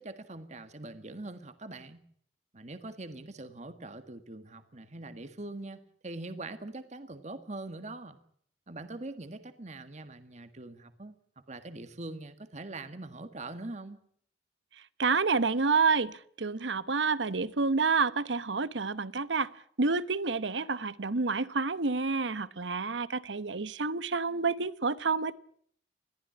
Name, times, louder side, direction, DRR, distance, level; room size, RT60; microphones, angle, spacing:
voice 1, 0.0-2.0 2.5-8.2 8.7-11.1 11.5-14.0, right 2 dB, 40° right, 1.7 m, -43 dB
voice 2, 15.0-19.5 19.8-25.3, right 4 dB, 80° right, 1.0 m, -29 dB
21.5 x 15.0 x 10.0 m
head